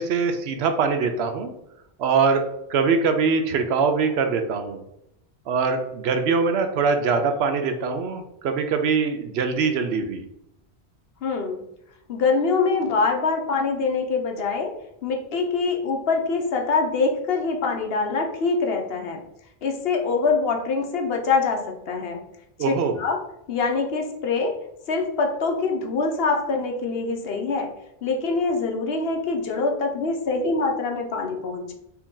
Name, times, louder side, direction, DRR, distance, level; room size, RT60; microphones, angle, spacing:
voice 1, 0.0-1.5 2.0-2.4 2.7-4.8 5.5-10.2 22.6-23.0, right 5 dB, 75° right, 7 dB, 0.8 m, -23 dB
voice 2, 11.2-11.6 12.1-14.7 15.0-19.2 19.6-22.2 22.6-23.2 23.5-24.5 24.9-27.7 28.0-31.7, left 4 dB, 70° left, 3 dB, 1.0 m, -24 dB
4.3 x 2.8 x 3.7 m, 0.79 s
omnidirectional pair, 1.1 m